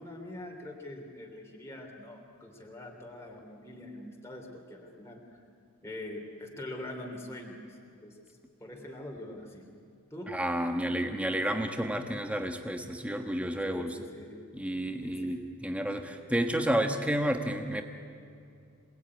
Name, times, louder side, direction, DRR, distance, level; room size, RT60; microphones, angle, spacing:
voice 1, 0.0-5.4 5.8-8.2 8.6-9.6 10.1-10.4 13.7-14.4 15.0-15.5, left 1 dB, 10° left, 0 dB, 3.3 m, -44 dB
voice 2, 10.3-14.0 14.5-17.8, right 1 dB, 5° right, 5 dB, 1.3 m, -31 dB
27.5 x 20.0 x 9.7 m, 2.5 s
head